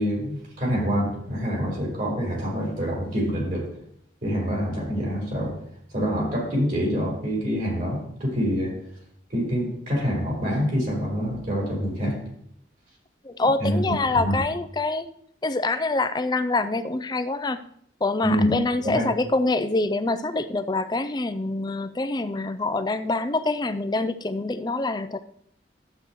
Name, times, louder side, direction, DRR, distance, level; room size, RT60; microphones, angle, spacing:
voice 1, 0.0-3.6 4.2-5.5 5.9-8.7 9.3-12.2 13.6-13.8 14.2-14.3 18.2-18.5 18.8-19.0, equal, 45° right, -3 dB, 4.5 m, -26 dB
voice 2, 13.2-15.1 15.4-17.6 18.0-25.2, left 2 dB, 20° left, 10 dB, 0.4 m, -25 dB
12.0 x 8.3 x 3.1 m, 0.70 s
head